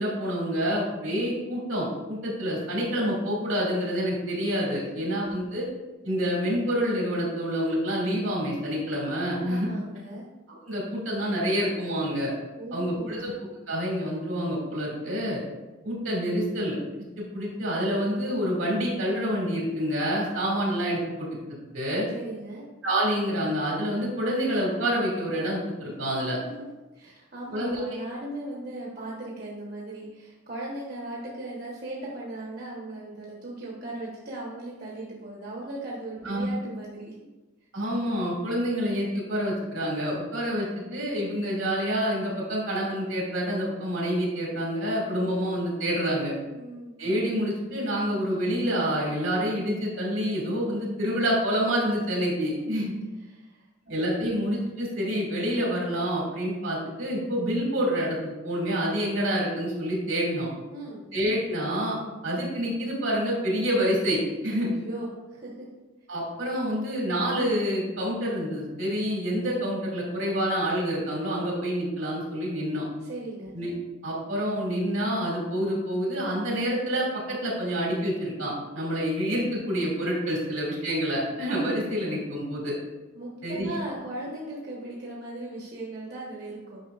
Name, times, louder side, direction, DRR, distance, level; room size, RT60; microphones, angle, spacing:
voice 1, 0.0-5.7 6.0-9.7 10.6-12.3 12.7-13.3 13.7-15.4 15.8-16.8 17.2-21.3 21.7-22.1 22.8-26.4 27.5-27.8 36.2-36.5 37.7-46.3 47.0-52.9 53.9-60.5 61.1-62.0 62.2-64.7 66.1-72.8 73.5-73.7 74.0-82.7 83.4-83.8, equal, 80° right, -3 dB, 2.4 m, -27 dB
voice 2, 9.4-10.3 12.6-13.3 22.1-22.7 26.9-37.1 46.5-46.9 53.3-53.7 60.7-61.1 64.8-65.6 73.0-73.5 80.4-80.5 83.1-86.8, right 2 dB, 50° right, -5 dB, 1.2 m, -38 dB
9.3 x 5.8 x 2.5 m, 1.1 s
head